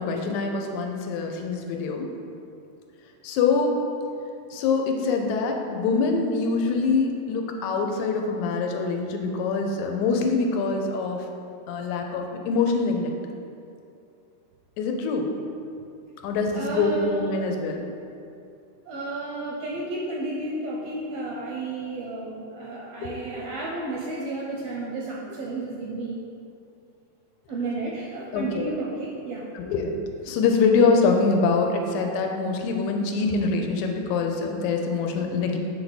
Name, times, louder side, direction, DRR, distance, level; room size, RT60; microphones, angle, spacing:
voice 1, 0.0-2.1 3.2-3.8 4.5-11.3 11.7-13.1 14.8-15.3 16.2-17.8 23.0-23.1 28.3-28.7 29.6-30.0 30.2-35.6, left 4 dB, 85° left, 3 dB, 2.0 m, -24 dB
voice 2, 16.5-17.5 18.9-26.2 27.5-29.5, right 2 dB, 80° right, -4 dB, 1.4 m, -32 dB
7.5 x 3.5 x 4.0 m, 2.5 s
omnidirectional pair, 3.3 m